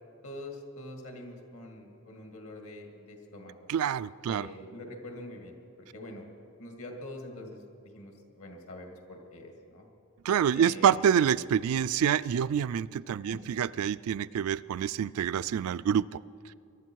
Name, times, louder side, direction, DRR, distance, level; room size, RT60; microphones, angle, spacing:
voice 1, 0.2-3.7 4.2-6.3 6.6-7.6 7.9-9.9 10.5-11.2 13.3-13.6, left 1 dB, 70° left, 3 dB, 2.2 m, -45 dB
voice 2, 3.7-4.5 10.2-16.2, right 8 dB, 70° right, 17 dB, 0.3 m, -27 dB
22.5 x 11.5 x 4.7 m, 2.6 s
head